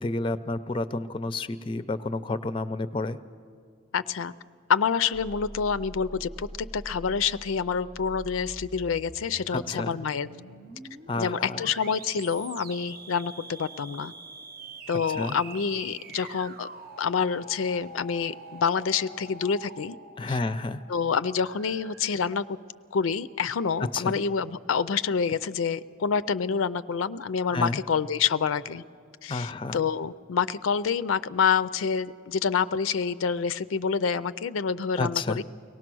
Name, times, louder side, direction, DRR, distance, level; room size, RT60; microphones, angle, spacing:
voice 1, 0.0-3.2 9.5-10.0 11.1-11.7 15.1-15.4 20.2-20.8 23.9-24.2 27.5-27.8 29.3-29.8 35.0-35.4, left 2 dB, 25° left, 13 dB, 0.4 m, -30 dB
voice 2, 3.9-4.3 4.7-10.3 11.2-14.1 14.9-16.7 17.0-20.0 20.3-20.4 20.9-22.4 22.9-28.8 29.2-35.4, left 6 dB, 85° left, 15 dB, 0.4 m, -27 dB
sound 1, 5.1-22.2, right 2 dB, 50° right, 0.7 m, -45 dB
23.5 x 18.0 x 6.2 m, 2.3 s
head